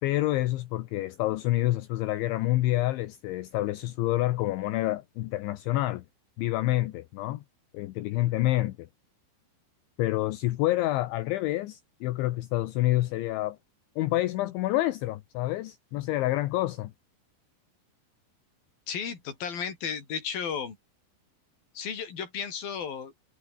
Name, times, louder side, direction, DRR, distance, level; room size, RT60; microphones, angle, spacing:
voice 1, 0.0-6.0 6.4-7.4 7.7-8.8 10.0-13.6 14.0-16.9, left 16 dB, 75° left, 3.3 m, -28 dB
voice 2, 18.9-20.8 21.7-23.1, left 7 dB, 50° left, 6.1 m, -34 dB
omnidirectional pair, 5.7 m